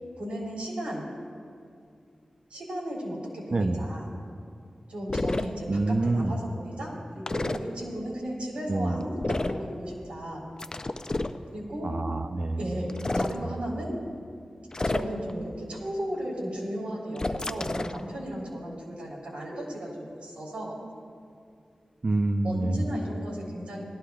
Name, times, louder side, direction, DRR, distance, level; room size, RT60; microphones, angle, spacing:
voice 1, 0.2-1.1 2.5-4.1 4.9-10.4 11.5-11.9 12.6-14.0 14.8-19.9 20.2-20.7 22.4-23.8, equal, 85° right, -5 dB, 3.5 m, -35 dB
voice 2, 3.5-3.8 5.7-6.4 8.7-9.0 11.8-12.7 13.4-13.6 22.0-22.9, right 2 dB, 55° right, 8 dB, 0.6 m, -27 dB
sound 1, 5.1-5.5 7.3-7.6 9.2-9.6 10.6-11.4 12.9-13.4 14.7-15.3 17.2-18.0, left 2 dB, 35° left, 0.5 m, -29 dB
19.0 x 13.0 x 2.4 m, 2.4 s
cardioid pair, 50°, 2 cm